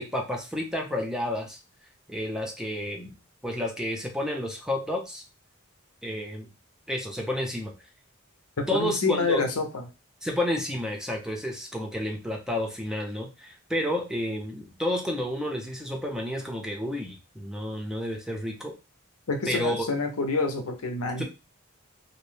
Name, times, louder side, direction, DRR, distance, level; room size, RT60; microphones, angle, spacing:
voice 1, 0.0-1.6 2.1-3.2 3.4-5.2 6.0-6.5 6.9-7.7 8.7-9.4 10.2-18.7 19.5-19.9 21.2-21.3, left 1 dB, 5° right, 1 dB, 0.5 m, -30 dB
voice 2, 8.6-9.8 19.3-21.2, left 3 dB, 90° left, 4 dB, 0.7 m, -27 dB
2.7 x 2.1 x 3.2 m, 0.29 s
head